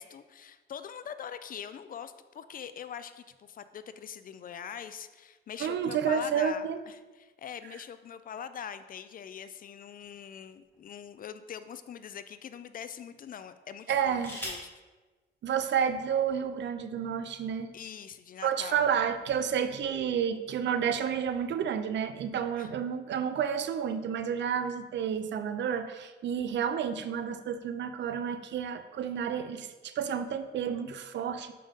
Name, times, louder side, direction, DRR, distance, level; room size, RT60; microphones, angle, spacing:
voice 1, 0.0-14.7 17.7-18.8 22.6-22.7, left 8 dB, 45° left, 12 dB, 0.4 m, -43 dB
voice 2, 5.6-6.8 13.9-14.3 15.4-17.7 18.4-31.5, right 8 dB, 65° right, 10 dB, 0.5 m, -30 dB
sound 1, 10.0-11.2 12.0-12.1 13.7-14.8 15.9-16.0 16.3-16.7, left 1 dB, 10° left, 2.1 m, -43 dB
6.6 x 5.4 x 3.6 m, 1.3 s
cardioid pair, 100°, 20 cm